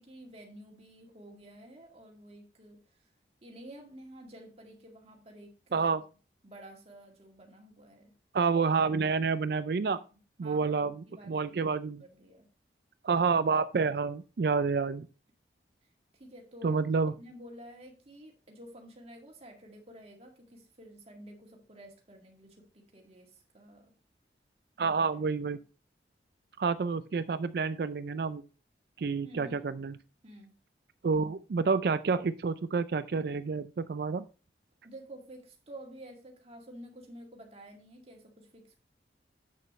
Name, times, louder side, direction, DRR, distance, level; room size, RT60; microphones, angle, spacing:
voice 1, 0.0-3.1 3.4-6.1 6.4-8.2 9.9-12.5 15.8-16.8 17.2-24.0 24.8-25.4 29.2-29.6 30.2-30.5 34.8-38.8, right 1 dB, 35° right, 2 dB, 2.0 m, -51 dB
voice 2, 5.7-6.0 8.3-10.0 10.4-12.0 13.0-15.1 16.6-17.1 24.8-25.6 26.6-28.4 29.0-30.0 31.0-34.2, right 5 dB, 60° right, 13 dB, 0.4 m, -29 dB
8.3 x 6.6 x 3.1 m, 0.34 s
head